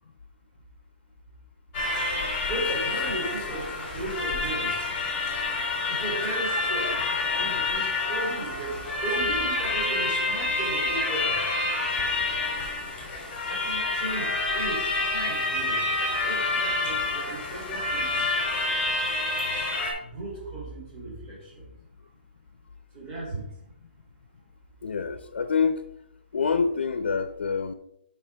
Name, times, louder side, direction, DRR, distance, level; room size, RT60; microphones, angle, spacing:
sound 1, 1.7-19.9, left 3 dB, 25° left, 2.7 m, -28 dB
voice 1, 2.5-4.7 5.9-11.4 13.5-15.8 16.2-18.1 20.0-21.7 22.9-23.5, right 2 dB, 25° right, -5 dB, 3.0 m, -36 dB
voice 2, 24.8-25.9 26.3-27.7, left 5 dB, 85° left, 10 dB, 0.6 m, -26 dB
8.6 x 5.6 x 3.4 m, 0.76 s
hypercardioid pair, 165°, 6 cm